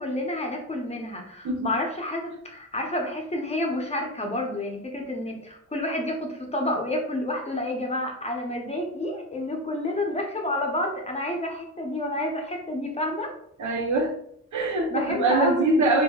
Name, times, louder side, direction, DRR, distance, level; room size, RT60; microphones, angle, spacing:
voice 1, 0.0-13.3 14.9-15.8, left 1 dB, 20° left, 1 dB, 0.6 m, -29 dB
voice 2, 13.6-14.1 14.5-16.0, right 2 dB, 75° right, 1 dB, 0.7 m, -23 dB
3.5 x 2.1 x 2.3 m, 0.69 s
cardioid pair, 90°, 30 cm